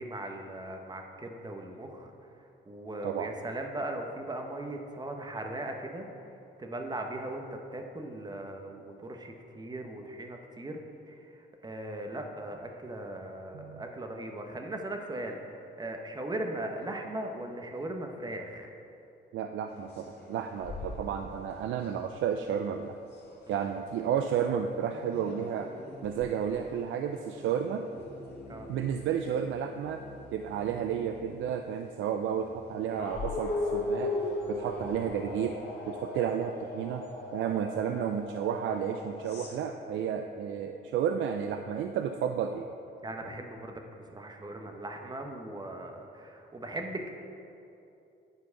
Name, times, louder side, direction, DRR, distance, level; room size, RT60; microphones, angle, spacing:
voice 1, 0.0-2.1 2.7-6.1 6.6-10.8 11.1-18.7 23.5-23.7 28.5-28.7 43.0-43.8 44.1-47.1, right 1 dB, 20° right, 3 dB, 0.9 m, -38 dB
voice 2, 3.0-3.3 13.5-13.8 19.3-23.0 23.5-25.7 26.0-27.8 28.7-30.0 30.3-34.1 34.5-35.5 35.9-37.0 37.3-42.7, right 8 dB, 75° right, 6 dB, 0.4 m, -32 dB
sound 1, 19.7-22.0 23.1-24.1 24.9-31.4 32.4-39.6, left 2 dB, 55° left, 2.1 m, -39 dB
9.7 x 4.5 x 5.8 m, 2.7 s
cardioid pair, 90°, 20 cm